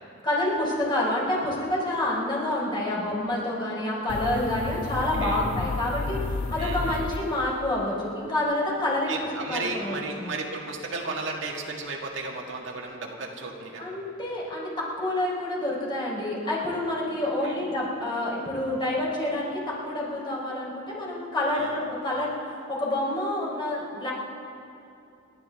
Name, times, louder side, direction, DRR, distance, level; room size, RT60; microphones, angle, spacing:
voice 1, 0.2-9.1 9.5-9.9 10.2-10.3 13.8-22.3 22.7-24.1, left 1 dB, 25° left, -5 dB, 4.0 m, -28 dB
sound 1, 4.1-7.8, left 3 dB, 40° left, 0.4 m, -32 dB
voice 2, 6.6-7.1 9.1-13.9 17.4-17.6 21.5-21.8, right 3 dB, 85° right, -1 dB, 1.9 m, -34 dB
28.0 x 12.0 x 3.6 m, 2.7 s
head